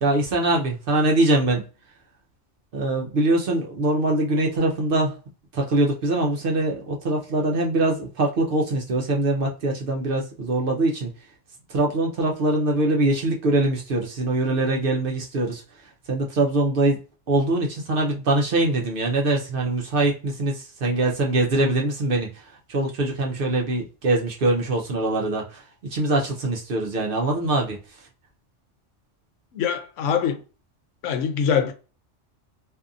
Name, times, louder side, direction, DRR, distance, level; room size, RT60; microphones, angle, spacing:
voice 1, 0.0-1.6 2.7-5.1 5.5-11.1 11.7-15.6 16.1-17.0 17.3-22.3 22.7-27.8, right 2 dB, 60° right, 0.7 m, -23 dB
voice 2, 29.5-30.4 31.0-31.7, left 7 dB, 85° left, 0.9 m, -23 dB
2.7 x 2.4 x 2.5 m
omnidirectional pair, 1.2 m